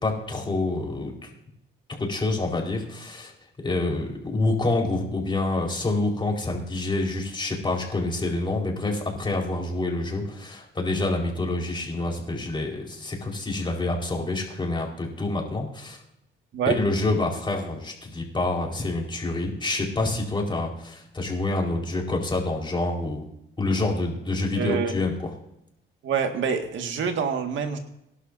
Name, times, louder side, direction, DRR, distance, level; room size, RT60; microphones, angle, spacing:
voice 1, 0.0-1.3 1.9-3.3 3.6-16.0 16.7-23.2 23.6-25.3, left 2 dB, 25° left, 0 dB, 4.4 m, -27 dB
voice 2, 24.6-24.9 26.0-27.8, right 6 dB, 75° right, 5 dB, 1.8 m, -26 dB
24.0 x 11.5 x 2.7 m, 0.80 s
cardioid pair, 90°, 20 cm